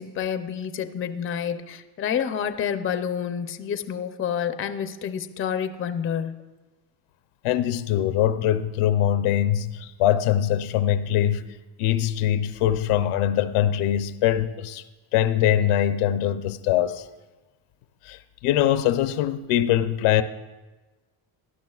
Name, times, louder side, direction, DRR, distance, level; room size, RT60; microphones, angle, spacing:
voice 1, 0.0-6.3, left 8 dB, 25° left, 0.5 m, -28 dB
voice 2, 7.4-14.8 15.1-17.1 18.0-20.2, left 11 dB, 80° left, 0.7 m, -23 dB
17.0 x 11.5 x 2.3 m
cardioid pair, 130°, 50 cm